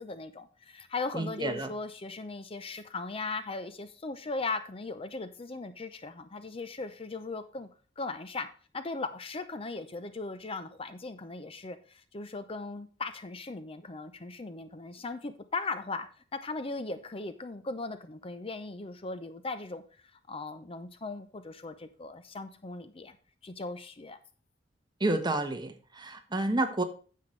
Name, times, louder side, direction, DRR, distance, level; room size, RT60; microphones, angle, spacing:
voice 1, 0.0-7.7 8.0-8.5 8.7-16.1 16.3-19.8 20.3-23.2 23.4-24.2, left 3 dB, 30° left, 10 dB, 0.6 m, -38 dB
voice 2, 1.1-1.7 25.0-26.8, right 2 dB, 25° right, 7 dB, 1.1 m, -30 dB
9.8 x 7.6 x 3.2 m, 0.39 s
head